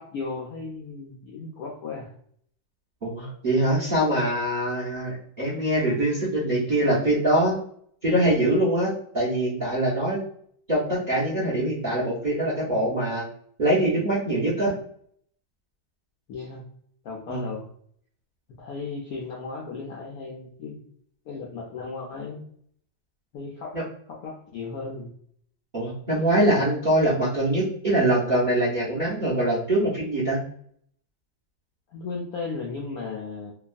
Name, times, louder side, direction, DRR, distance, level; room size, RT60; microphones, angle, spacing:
voice 1, 0.0-2.1 16.3-16.7 17.0-17.7 18.6-20.8 21.3-22.4 23.3-23.8 24.1-25.1 31.9-33.5, left 4 dB, 75° left, -2 dB, 0.8 m, -35 dB
voice 2, 3.0-7.6 8.0-10.2 10.7-13.2 13.6-14.7 17.3-17.5 23.7-23.8 25.7-30.4, right 1 dB, 45° right, -7 dB, 0.6 m, -23 dB
3.1 x 2.3 x 2.4 m, 0.64 s
omnidirectional pair, 2.1 m